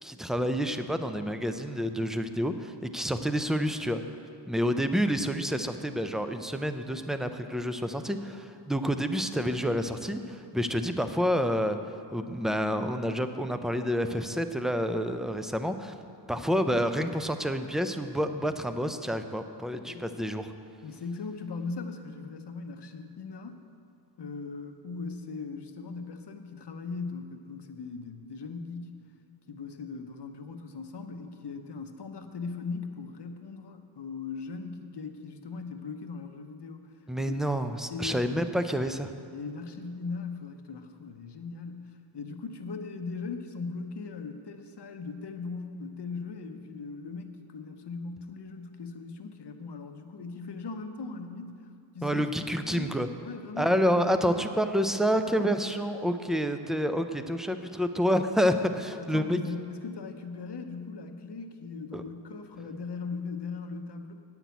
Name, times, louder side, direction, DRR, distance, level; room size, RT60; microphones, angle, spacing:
voice 1, 0.0-4.0 4.5-15.9 16.3-20.5 37.1-39.1 52.0-53.1 53.6-59.4 61.9-62.0, equal, ahead, 8 dB, 0.4 m, -28 dB
voice 2, 20.8-23.6 24.2-29.0 29.5-36.9 37.2-37.4 37.9-38.4 39.3-54.4 58.9-64.1, left 4 dB, 60° left, 7 dB, 0.8 m, -39 dB
8.9 x 6.0 x 8.2 m, 2.5 s
wide cardioid pair, 85°, 46 cm